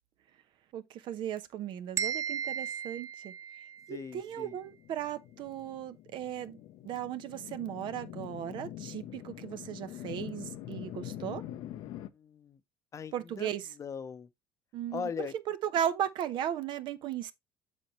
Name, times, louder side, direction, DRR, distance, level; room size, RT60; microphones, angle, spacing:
voice 1, 0.7-3.3 3.9-6.6 6.8-11.4 13.1-13.7 14.7-15.1 15.5-17.3, right 10 dB, 65° right, 0.9 m, -36 dB
sound 1, 2.0-4.0, right 8 dB, 35° right, 1.0 m, -35 dB
voice 2, 3.9-4.5 12.1-12.6 12.9-14.3 14.9-15.3, left 6 dB, 35° left, 0.7 m, -40 dB
sound 2, 4.5-12.1, left 12 dB, 70° left, 0.8 m, -44 dB
7.5 x 6.3 x 3.0 m
supercardioid pair, 95°, 9 cm